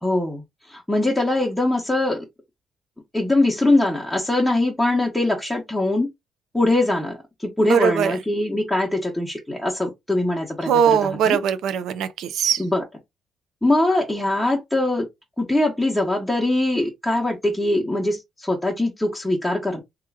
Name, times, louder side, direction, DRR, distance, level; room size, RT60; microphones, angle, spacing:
voice 1, 0.0-2.2 3.1-6.1 6.5-11.4 12.6-12.8 13.6-15.1 15.4-19.8, left 2 dB, 5° left, 0.9 m, -22 dB
voice 2, 7.6-8.1 10.7-12.6, right 7 dB, 80° right, 0.5 m, -20 dB
3.0 x 2.3 x 3.3 m
cardioid pair, 90°, 0 cm